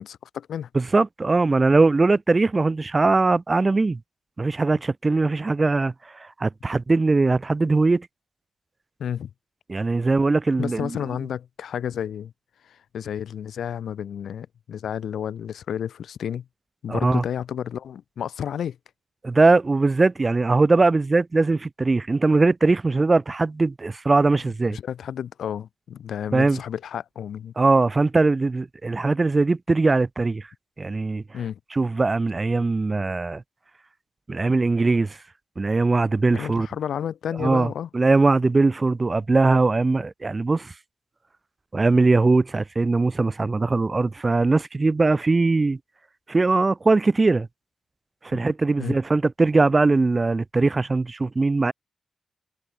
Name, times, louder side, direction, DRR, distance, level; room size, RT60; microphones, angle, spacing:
voice 1, 0.0-0.7 9.0-9.3 10.6-12.3 12.6-16.5 16.8-18.8 24.7-27.5 31.3-31.6 34.5-34.6 36.3-37.9 48.8-49.0, left 9 dB, 85° left, 0.8 m, -31 dB
voice 2, 0.7-4.0 4.4-5.9 6.2-8.1 9.7-10.9 16.9-17.2 19.2-24.8 26.3-26.6 27.6-30.5 30.8-31.2 31.7-33.4 34.3-35.2 35.6-36.7 37.4-40.7 41.7-45.8 46.3-47.5 48.2-51.7, right 3 dB, 40° right, 0.3 m, -20 dB
supercardioid pair, 40°, 0 cm